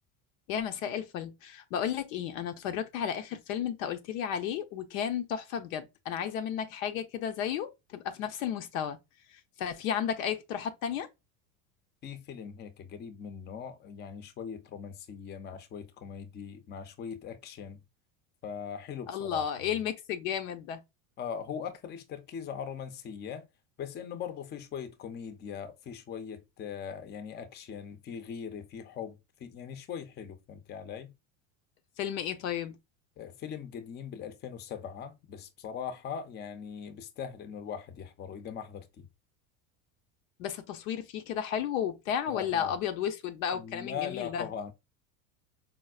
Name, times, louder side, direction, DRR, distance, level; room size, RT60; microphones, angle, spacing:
voice 1, 0.5-9.0 9.3-11.1 19.1-20.8 32.0-32.8 40.4-44.5, left 9 dB, 85° left, 0.7 m, -33 dB
voice 2, 12.0-17.8 18.4-19.4 21.2-23.5 23.8-31.1 33.2-39.1 42.3-42.8 43.5-44.7, left 7 dB, 25° left, 0.5 m, -40 dB
4.4 x 2.0 x 2.3 m
supercardioid pair, 110°, 39 cm